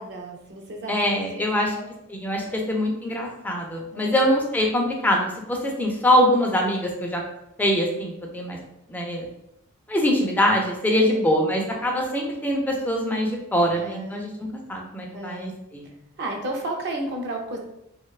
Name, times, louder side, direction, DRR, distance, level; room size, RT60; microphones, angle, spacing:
voice 1, 0.0-1.9 2.4-2.6 3.9-4.2 10.9-11.3 13.6-14.2 15.1-15.5 16.2-17.6, right 1 dB, 50° right, 1 dB, 0.5 m, -33 dB
voice 2, 0.9-1.8 2.1-7.2 7.6-8.6 8.9-9.3 9.9-14.3 14.7-15.9, equal, 10° left, 0 dB, 0.3 m, -23 dB
2.5 x 2.1 x 2.3 m, 0.85 s
head